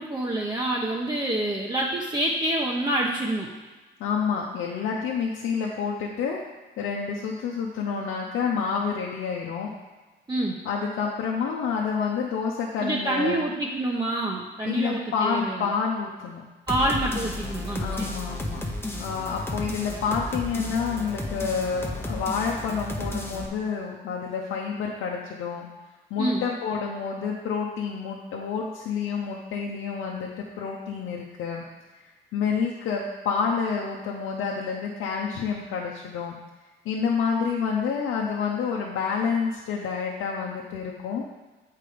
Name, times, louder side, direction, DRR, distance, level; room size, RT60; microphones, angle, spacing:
voice 1, 0.0-3.5 10.3-10.6 12.8-15.7 16.7-18.1 26.2-26.5, right 1 dB, 20° right, -3 dB, 1.0 m, -27 dB
voice 2, 4.0-6.4 6.8-9.7 10.6-13.4 14.6-16.4 17.8-18.6 19.0-25.7 26.1-31.6 32.3-36.4 36.8-41.2, left 6 dB, 85° left, -3 dB, 0.9 m, -28 dB
sound 1, 16.7-23.5, left 1 dB, 10° left, 0.9 m, -33 dB
7.8 x 4.8 x 5.0 m, 1.2 s
cardioid pair, 90°, 20 cm